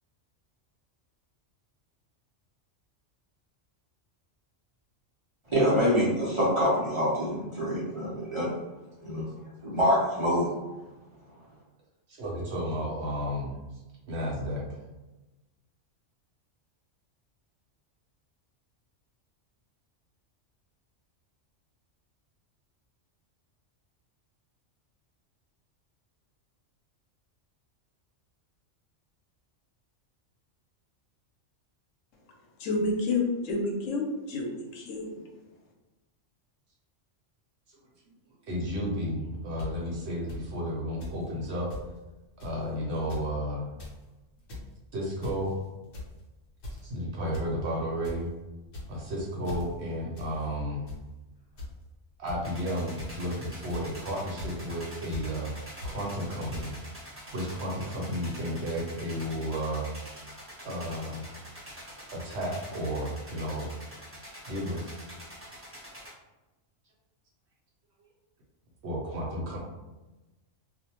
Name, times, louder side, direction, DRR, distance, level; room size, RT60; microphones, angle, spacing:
voice 1, 5.5-8.5 9.0-9.2 9.6-10.5, equal, 35° right, -8 dB, 0.5 m, -25 dB
voice 2, 12.1-13.5 14.1-14.6 38.5-41.7 42.4-43.7 44.9-45.5 46.8-48.3 48.9-50.9 52.2-57.0 57.3-59.9 60.6-61.2 62.1-63.7 64.5-64.9 68.8-69.6, equal, 65° right, -3 dB, 0.9 m, -32 dB
voice 3, 32.6-35.2, left 2 dB, 85° left, 1 dB, 1.0 m, -29 dB
sound 1, 39.6-39.7 40.3-40.4 41.0-41.2 41.4-41.5 41.7-41.9 42.4-42.6 43.0-43.3 43.6-43.9 44.3-44.7 45.2-45.5 45.9-46.2 46.6-46.9 47.3-47.5 47.8-48.2 48.6-49.1 49.4-49.6 50.1-50.3 50.6-51.0 51.6-51.7 52.3-52.4 53.0-53.2 53.7-54.0 54.4-54.5 55.1-55.2 55.8-55.9 56.5-56.6, left 2 dB, 65° left, 1.0 m, -39 dB
sound 2, 52.4-66.1, equal, 10° right, 1.0 m, -46 dB
2.4 x 2.1 x 2.9 m, 1.1 s
omnidirectional pair, 1.3 m